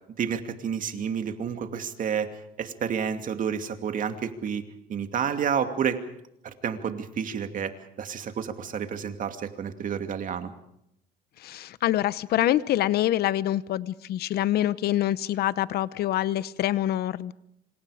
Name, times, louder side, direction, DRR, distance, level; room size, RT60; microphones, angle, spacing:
voice 1, 0.2-2.3 2.6-4.6 4.9-6.0 6.4-10.5, right 7 dB, 50° right, 7 dB, 2.5 m, -30 dB
voice 2, 11.4-17.3, left 13 dB, 70° left, 17 dB, 0.9 m, -25 dB
27.0 x 26.5 x 5.1 m, 0.76 s
cardioid pair, 110°, 17 cm